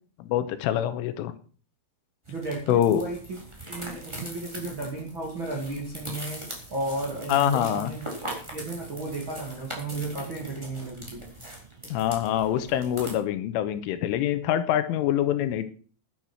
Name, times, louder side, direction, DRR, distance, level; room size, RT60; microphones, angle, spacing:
voice 1, 0.2-1.3 2.7-3.0 7.3-7.9 11.9-15.6, left 11 dB, 80° left, 11 dB, 3.4 m, -25 dB
sound 1, 2.3-13.2, right 1 dB, 5° right, 3.0 m, -41 dB
voice 2, 2.3-6.4 6.7-11.3, right 2 dB, 40° right, -2 dB, 1.8 m, -34 dB
11.0 x 10.5 x 6.2 m, 0.41 s
omnidirectional pair, 5.8 m